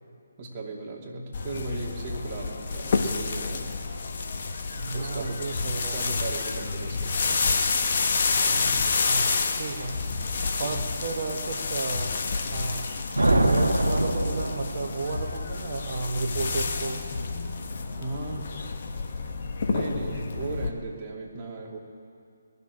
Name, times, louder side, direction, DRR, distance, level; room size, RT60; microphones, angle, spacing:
voice 1, 0.4-3.8 4.9-5.5 5.8-7.5 8.4-8.9 10.5-10.8 18.0-18.5 19.7-21.8, right 3 dB, 30° right, -2 dB, 2.5 m, -37 dB
sound 1, 1.3-20.7, left 4 dB, 50° left, 1.3 m, -29 dB
voice 2, 4.7-6.1 9.0-10.0 10.6-12.2 12.5-12.9 13.4-17.0, right 4 dB, 50° right, 1 dB, 1.2 m, -33 dB
sound 2, 13.2-15.1, right 1 dB, 85° right, 1.3 m, -24 dB
20.5 x 6.9 x 9.9 m, 2.4 s
figure-of-eight pair, 145°, 0 cm